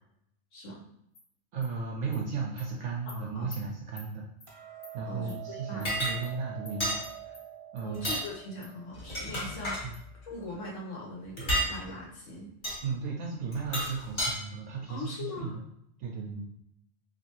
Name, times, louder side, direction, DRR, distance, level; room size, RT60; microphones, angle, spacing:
voice 1, 0.5-0.8 3.1-3.5 5.0-5.9 7.8-9.8 10.2-12.5 14.9-15.5, left 2 dB, 70° left, -3 dB, 1.3 m, -41 dB
Animal, 1.1-1.2 1.6-1.7 2.1-2.2 2.6-2.7 3.1-3.2 3.5-3.6 4.0-4.1 4.4-4.5 4.8-4.9 5.3-5.4 5.8-5.9 6.2-6.3 6.7-6.8 7.0-7.4 7.8-7.9 8.2-8.3 8.6-8.7 9.1-9.2 9.5-9.6 9.9-10.0, left 3 dB, 55° left, 0.9 m, -49 dB
voice 2, 1.5-4.3 4.9-7.0 7.3-7.4 7.7-8.1 9.8-10.0 12.8-15.6 16.0-16.5, right 5 dB, 80° right, -2 dB, 1.0 m, -35 dB
Hammer, 4.5-10.7, right 14 dB, 30° right, 0.6 m, -46 dB
sound 1, 5.9-6.2 6.8-7.0 7.9-8.3 8.9-9.8 11.4-11.7 12.6-12.8 13.5-14.3, equal, 40° left, 1.3 m, -30 dB
3.2 x 2.8 x 2.9 m, 0.74 s
omnidirectional pair, 1.4 m